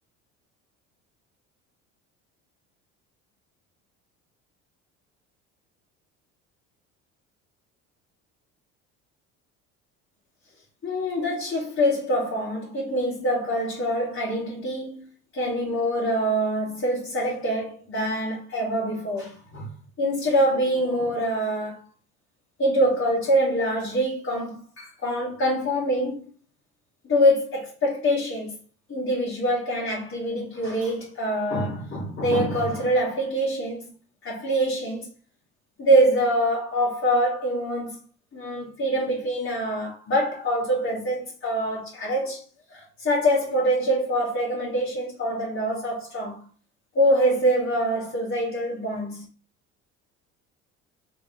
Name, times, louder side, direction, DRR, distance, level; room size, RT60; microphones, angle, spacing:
voice 1, 10.8-15.1 15.3-19.7 20.0-21.8 22.6-26.2 27.1-28.6 28.9-33.8 34.2-35.1 35.8-38.0 38.3-42.4 42.7-46.4 46.9-49.2, equal, 35° left, 1.4 m, -24 dB
3.4 x 3.1 x 2.7 m
hypercardioid pair, 70°, 38 cm